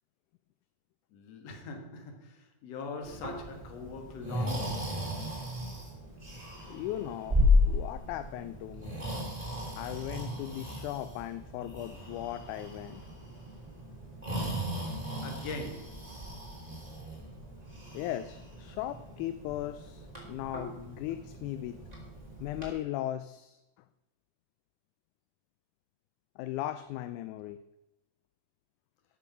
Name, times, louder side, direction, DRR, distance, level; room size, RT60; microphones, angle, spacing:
voice 1, 1.1-4.9 15.2-16.1, left 4 dB, 55° left, 2.5 m, -42 dB
Breathing, 3.0-22.7, left 2 dB, 10° right, 3.2 m, -34 dB
voice 2, 6.7-7.4 7.6-9.0 9.8-13.0 17.9-21.8 22.4-23.6 26.4-27.6, left 13 dB, 80° left, 1.9 m, -37 dB
13.0 x 7.0 x 5.6 m
omnidirectional pair, 3.7 m